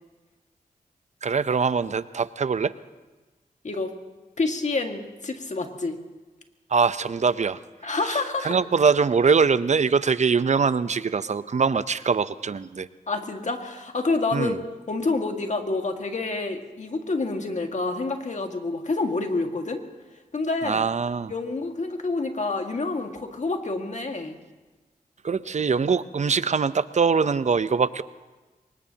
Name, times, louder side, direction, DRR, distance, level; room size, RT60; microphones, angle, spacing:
voice 1, 1.2-2.7 6.7-12.9 14.3-14.6 20.6-21.3 25.2-28.0, right 5 dB, 50° right, 14 dB, 0.7 m, -23 dB
voice 2, 4.4-6.0 7.8-8.6 13.1-14.6 14.9-19.8 20.3-20.8 21.3-24.4, left 3 dB, 50° left, 4 dB, 1.8 m, -28 dB
23.5 x 20.0 x 2.9 m, 1.2 s
cardioid pair, 50°, 15 cm